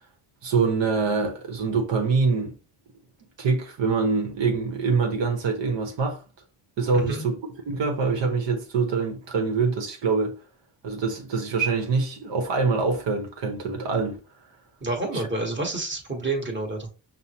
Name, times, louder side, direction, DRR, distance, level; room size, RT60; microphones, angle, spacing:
voice 1, 0.4-2.6 3.4-6.2 6.8-10.4 10.8-14.2 15.1-15.2, right 4 dB, 80° right, 1.0 m, -25 dB
voice 2, 6.9-7.2 14.8-16.9, right 2 dB, 25° right, 1.4 m, -29 dB
5.4 x 2.1 x 2.8 m
cardioid pair, 90°, 43 cm